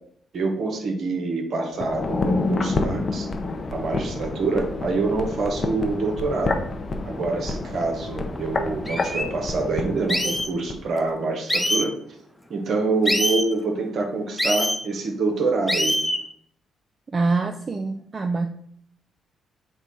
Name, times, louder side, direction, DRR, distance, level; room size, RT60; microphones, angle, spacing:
voice 1, 0.3-3.3 3.7-6.6 7.0-11.9 12.5-16.0, right 3 dB, 60° right, 4 dB, 0.7 m, -26 dB
sound 1, 1.7-10.8 11.1-11.2, left 3 dB, 45° left, 0.6 m, -28 dB
sound 2, 8.4-8.5 8.9-9.2 10.1-10.5 11.5-11.9 13.0-13.5 14.4-14.8 15.7-16.2, equal, 5° left, 0.6 m, -23 dB
voice 2, 17.1-18.5, right 3 dB, 40° right, 6 dB, 0.3 m, -24 dB
4.5 x 2.2 x 3.9 m, 0.65 s
hypercardioid pair, 45°, 0 cm